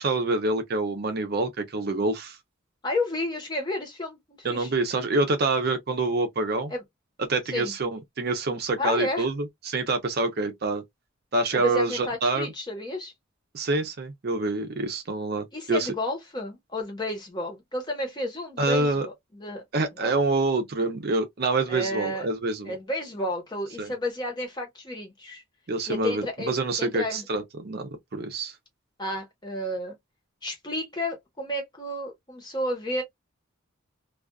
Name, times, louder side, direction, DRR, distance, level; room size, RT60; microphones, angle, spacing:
voice 1, 0.0-2.4 4.4-6.7 7.2-10.8 11.3-12.5 13.5-15.9 18.6-19.1 19.7-22.8 23.8-23.9 25.7-28.5, right 2 dB, 50° right, 0.6 m, -26 dB
voice 2, 2.8-4.7 6.7-6.8 7.5-7.7 8.8-9.3 11.5-13.1 15.5-19.6 19.9-20.1 21.7-22.3 22.7-25.4 25.9-27.2 29.0-30.0 30.4-33.0, left 1 dB, 20° left, 1.0 m, -31 dB
2.4 x 2.4 x 2.3 m
head